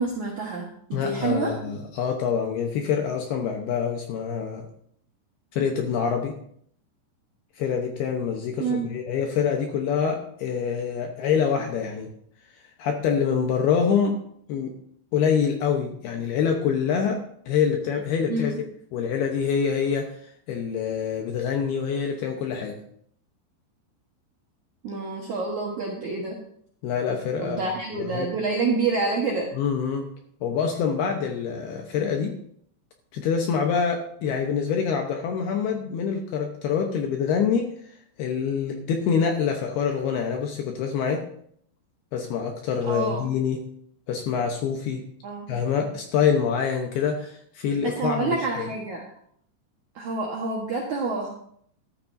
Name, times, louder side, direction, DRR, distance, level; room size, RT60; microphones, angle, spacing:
voice 1, 0.0-1.5 8.6-8.9 18.3-18.6 24.8-26.4 27.4-29.5 42.8-43.2 45.2-45.5 47.8-49.0 50.0-51.3, right 3 dB, 70° right, -2 dB, 1.8 m, -27 dB
voice 2, 0.9-4.7 5.5-6.3 7.6-12.1 12.8-14.2 14.5-14.7 15.1-18.5 18.9-20.1 20.5-22.8 26.8-27.6 28.0-28.3 29.6-30.1 30.4-32.3 33.1-37.7 38.2-41.3 42.1-43.6 44.1-45.0 45.5-48.7, left 7 dB, 75° left, 3 dB, 2.5 m, -25 dB
13.0 x 13.0 x 2.7 m, 0.64 s
omnidirectional pair, 5.6 m